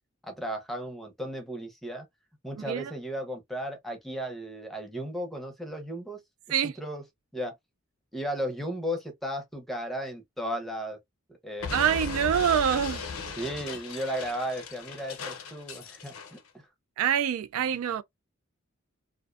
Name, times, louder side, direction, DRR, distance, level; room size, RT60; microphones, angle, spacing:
voice 1, 0.2-2.1 2.4-6.2 6.8-7.0 7.3-7.5 8.1-11.0 11.4-11.9 13.4-16.7, equal, ahead, 0.6 m, -35 dB
Explosion, 11.6-16.4, left 4 dB, 90° left, 0.6 m, -37 dB
voice 2, 11.7-13.1 17.0-18.0, right 9 dB, 85° right, 0.3 m, -25 dB
2.5 x 2.1 x 2.4 m
head